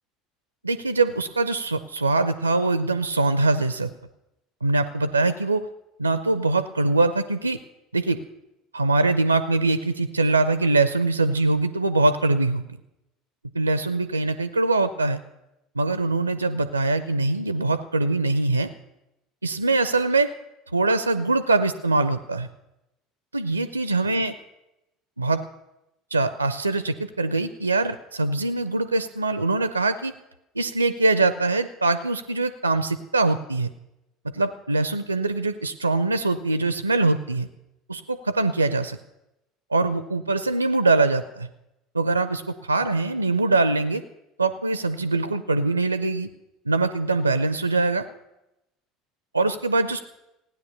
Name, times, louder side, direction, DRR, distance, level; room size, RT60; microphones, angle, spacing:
voice 1, 0.6-3.9 4.6-5.7 6.0-7.6 7.9-8.2 8.7-12.6 13.5-15.2 15.8-18.7 19.4-20.3 20.7-22.5 23.3-24.3 25.2-25.4 26.1-30.1 30.6-33.7 34.3-37.5 37.9-39.0 39.7-41.5 41.9-44.0 44.4-46.3 46.7-48.0 49.3-50.0, right 3 dB, 85° right, 13 dB, 0.4 m, -23 dB
16.5 x 9.6 x 6.9 m, 0.91 s
figure-of-eight pair, 65°, 0 cm